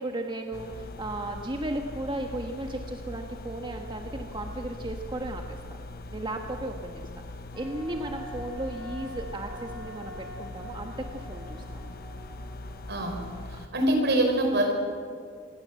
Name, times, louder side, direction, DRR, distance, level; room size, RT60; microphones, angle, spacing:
voice 1, 0.0-5.8 6.1-11.9, right 1 dB, 25° right, 3 dB, 1.5 m, -35 dB
sound 1, 0.5-13.7, left 1 dB, 55° left, 1.1 m, -41 dB
Wind instrument woodwind instrument, 7.5-13.0, equal, ahead, 4.3 m, -46 dB
voice 2, 12.9-14.7, right 1 dB, 60° right, 4 dB, 5.3 m, -25 dB
27.0 x 21.5 x 7.7 m, 2.2 s
head